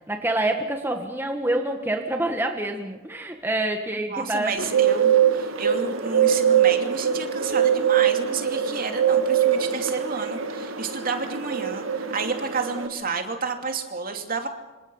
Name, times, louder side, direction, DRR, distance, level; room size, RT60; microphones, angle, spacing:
voice 1, 0.1-4.6, right 1 dB, 10° right, 3 dB, 1.6 m, -26 dB
voice 2, 4.1-14.5, right 4 dB, 45° right, 4 dB, 2.9 m, -31 dB
Bird, 4.6-12.9, right 9 dB, 75° right, 2.0 m, -23 dB
27.0 x 26.5 x 5.7 m, 1.2 s
head